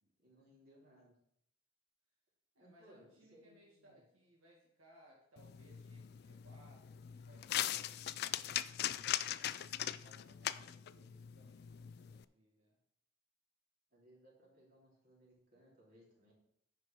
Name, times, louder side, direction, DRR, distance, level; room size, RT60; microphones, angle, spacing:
voice 1, 0.2-1.2 2.6-4.0 10.9-11.1 13.9-16.3, equal, 45° right, -4 dB, 3.2 m, -64 dB
voice 2, 2.5-9.5 10.0-12.8, equal, 80° right, -3 dB, 2.1 m, -66 dB
sound 1, 5.4-12.2, left 12 dB, 50° left, 0.3 m, -41 dB
9.6 x 4.8 x 6.0 m, 0.73 s
head